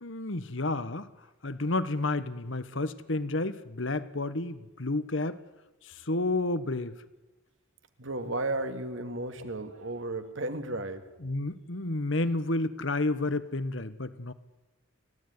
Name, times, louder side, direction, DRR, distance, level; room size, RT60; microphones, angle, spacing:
voice 1, 0.0-1.1 1.4-5.4 5.8-6.9 11.2-14.3, left 2 dB, 65° left, 14 dB, 1.4 m, -30 dB
voice 2, 8.0-11.0, right 2 dB, 65° right, 8 dB, 2.5 m, -34 dB
29.5 x 16.0 x 9.8 m, 1.1 s
head